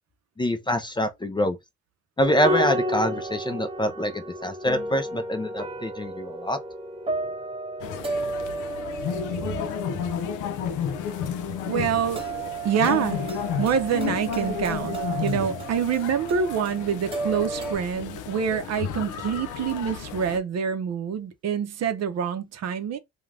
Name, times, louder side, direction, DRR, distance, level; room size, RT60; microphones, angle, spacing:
voice 1, 0.4-1.6 2.2-6.6, left 1 dB, 15° left, 0.4 m, -25 dB
sound 1, 2.2-17.7, right 2 dB, 20° right, 1.0 m, -33 dB
sound 2, 7.8-20.4, left 8 dB, 85° left, 0.5 m, -32 dB
voice 2, 11.7-12.2 12.6-13.2 13.6-23.0, right 7 dB, 60° right, 0.6 m, -26 dB
2.5 x 2.2 x 3.2 m
cardioid pair, 90°, 30 cm